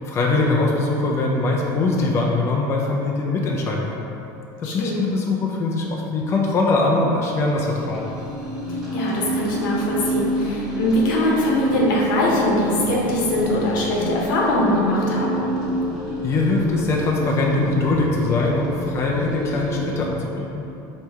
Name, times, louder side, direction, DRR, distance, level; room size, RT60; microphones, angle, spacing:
voice 1, 0.0-4.1 4.6-8.1 16.2-20.6, left 3 dB, 25° left, -2 dB, 0.5 m, -22 dB
voice 2, 4.6-5.0 8.7-15.4, left 1 dB, 85° left, -4 dB, 1.1 m, -22 dB
sound 1, 7.5-20.1, equal, 5° right, 1.0 m, -28 dB
4.5 x 3.3 x 3.5 m, 2.9 s
supercardioid pair, 135°, 10 cm